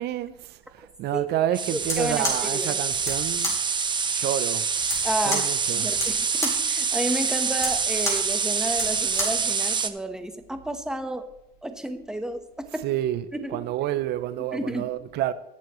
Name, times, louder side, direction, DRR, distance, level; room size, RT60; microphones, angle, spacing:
voice 1, 0.0-3.6 4.1-4.7 5.3-5.9 12.8-15.3, right 13 dB, 75° right, 0.6 m, -29 dB
voice 2, 1.1-2.8 5.0-5.5 5.7-11.2 11.6-12.9 13.3-13.7 14.5-14.9, right 1 dB, 5° right, 1.1 m, -31 dB
sound 1, 1.5-9.9, right 5 dB, 25° right, 0.7 m, -26 dB
sound 2, 1.8-9.5, left 1 dB, 15° left, 4.0 m, -33 dB
20.0 x 7.0 x 3.1 m
cardioid pair, 110°, 17 cm